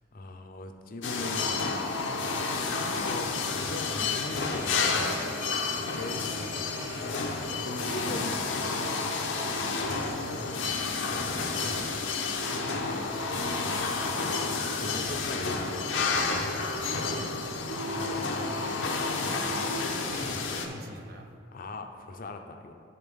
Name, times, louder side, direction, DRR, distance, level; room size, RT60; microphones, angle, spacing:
voice 1, 0.1-1.6 2.5-4.9 5.3-5.5 5.8-6.3 7.5-8.7 13.8-15.8 21.5-22.7, left 2 dB, 50° left, 5 dB, 0.6 m, -40 dB
sound 1, 1.0-20.7, left 4 dB, 85° left, 0.7 m, -30 dB
sound 2, 4.4-9.2 9.6-9.7, equal, 15° right, 0.9 m, -46 dB
voice 2, 6.3-7.7 9.7-10.6 11.0-12.0 12.5-13.3 16.1-17.0 17.8-21.3, right 1 dB, 55° right, 2 dB, 0.8 m, -44 dB
11.5 x 3.9 x 3.5 m, 2.2 s
head